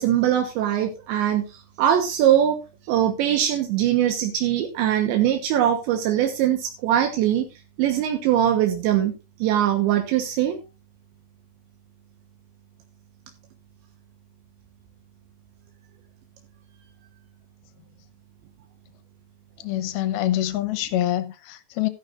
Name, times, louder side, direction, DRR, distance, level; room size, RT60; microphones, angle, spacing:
voice 1, 0.0-7.5 7.8-9.1 9.4-10.6, right 11 dB, 80° right, 3.5 m, -22 dB
voice 2, 19.6-21.9, left 13 dB, 70° left, 2.5 m, -25 dB
14.0 x 11.5 x 2.5 m
omnidirectional pair, 5.2 m